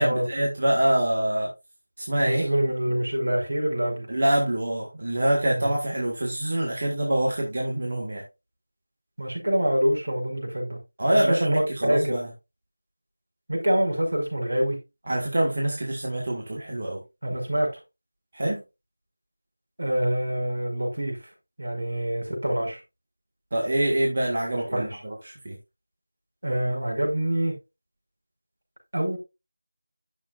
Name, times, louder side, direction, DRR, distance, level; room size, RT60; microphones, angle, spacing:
voice 1, 0.0-1.5 2.0-2.4 4.1-8.2 11.0-12.3 15.1-17.0 18.3-18.6 23.5-25.6, right 1 dB, 30° right, 1.9 m, -25 dB
voice 2, 2.2-4.1 5.5-5.7 9.2-12.2 13.5-14.8 17.2-17.7 19.8-21.2 21.6-22.8 24.7-25.0 26.4-27.6 28.9-29.2, right 1 dB, 70° right, 5.3 m, -26 dB
10.5 x 7.3 x 2.5 m
figure-of-eight pair, 180°, 0 cm